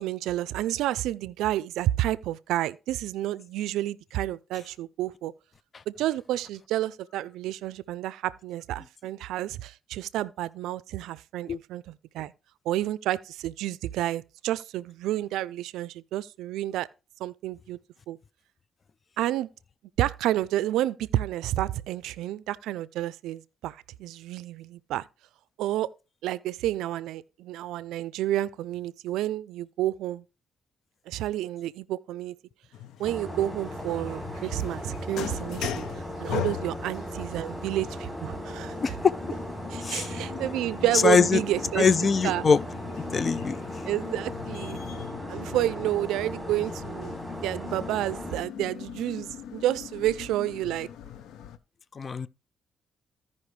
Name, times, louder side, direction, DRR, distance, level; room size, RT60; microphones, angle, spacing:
voice 1, 0.0-5.3 5.9-12.3 12.7-16.9 17.2-17.8 18.1-18.2 19.2-19.5 20.0-25.1 25.6-25.9 26.2-30.2 31.1-32.4 33.0-35.9 36.2-39.0 39.7-41.9 42.2-42.5 43.8-44.8 45.3-47.1 47.4-50.9, right 14 dB, 90° right, 0.4 m, -30 dB
sound 1, 32.7-51.6, left 9 dB, 80° left, 0.7 m, -40 dB
sound 2, 33.0-48.4, equal, 5° right, 3.0 m, -38 dB
sound 3, 33.6-45.1, left 4 dB, 65° left, 2.5 m, -49 dB
voice 2, 38.8-39.1 39.8-40.2 41.0-41.4 41.8-42.6 43.1-43.6 52.0-52.3, left 5 dB, 40° left, 0.4 m, -22 dB
15.5 x 5.4 x 3.2 m
cardioid pair, 90°, 0 cm